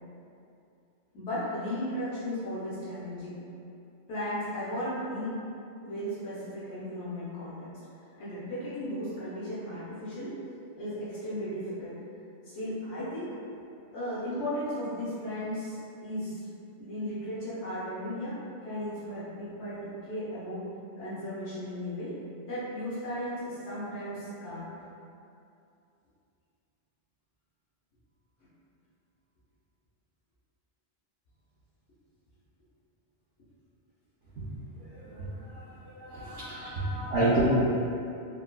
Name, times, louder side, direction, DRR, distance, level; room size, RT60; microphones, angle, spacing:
voice 1, 1.1-3.4 4.1-5.4 5.8-7.7 8.2-10.4 10.8-12.0 12.4-13.3 13.9-16.5 16.8-20.7 21.0-22.1 22.4-24.7 36.7-37.0, equal, 80° left, -10 dB, 1.0 m, -35 dB
voice 2, 34.8-37.4, right 2 dB, 80° right, -11 dB, 0.9 m, -31 dB
3.6 x 2.2 x 2.2 m, 2.6 s
omnidirectional pair, 1.2 m